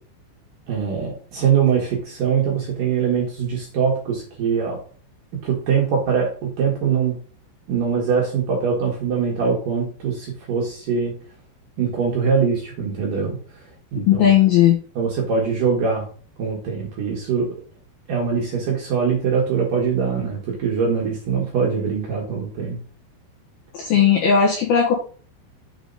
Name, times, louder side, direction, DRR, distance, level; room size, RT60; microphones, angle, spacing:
voice 1, 0.7-4.8 5.4-7.2 7.7-11.2 11.8-13.4 13.9-14.3 15.0-16.1 16.4-17.5 18.1-22.8, right 6 dB, 60° right, -2 dB, 2.5 m, -22 dB
voice 2, 13.9-14.8 23.7-24.9, left 8 dB, 75° left, -1 dB, 2.3 m, -16 dB
7.0 x 4.9 x 3.9 m, 0.41 s
omnidirectional pair, 5.7 m